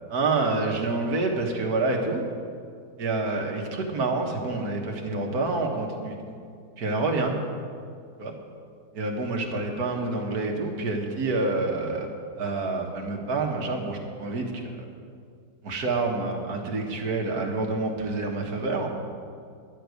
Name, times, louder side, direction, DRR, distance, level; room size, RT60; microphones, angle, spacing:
voice 1, 0.1-2.2 3.0-6.3 6.8-7.4 8.2-8.3 8.9-12.1 12.4-14.9 15.6-18.9, right 3 dB, 55° right, 2 dB, 1.8 m, -27 dB
11.5 x 6.7 x 9.4 m, 2.3 s
omnidirectional pair, 2.1 m